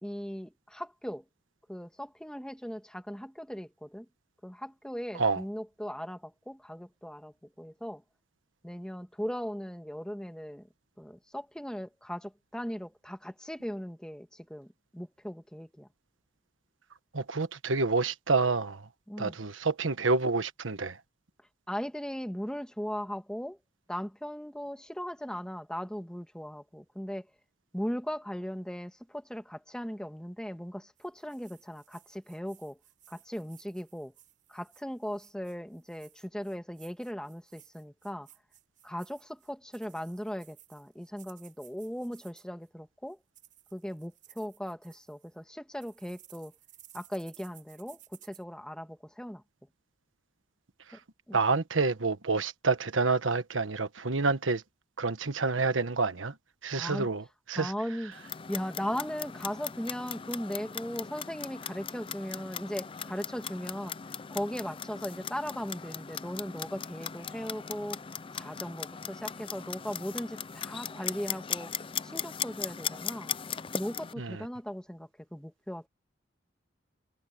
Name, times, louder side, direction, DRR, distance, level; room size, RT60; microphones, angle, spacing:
voice 1, 0.0-1.2 1.7-4.1 4.4-8.0 8.6-10.7 11.0-15.9 19.1-19.4 21.7-23.6 23.9-27.3 27.7-32.8 33.1-34.1 34.5-38.3 38.8-43.2 43.7-46.5 46.9-49.4 50.9-51.0 51.3-51.4 56.8-57.1 57.6-58.1 58.5-63.9 64.3-68.1 68.3-71.7 72.0-73.4 73.7-75.9, equal, 5° left, 1.8 m, -38 dB
voice 2, 17.1-18.9 19.2-21.0 50.9-51.0 51.3-54.6 55.0-56.4 56.6-57.7 74.2-74.4, right 4 dB, 90° right, 1.3 m, -28 dB
sound 1, 31.0-42.7 43.1-45.4 45.8-48.4, right 12 dB, 45° right, 7.7 m, -58 dB
Clock, 58.1-74.1, left 7 dB, 30° left, 0.5 m, -38 dB
head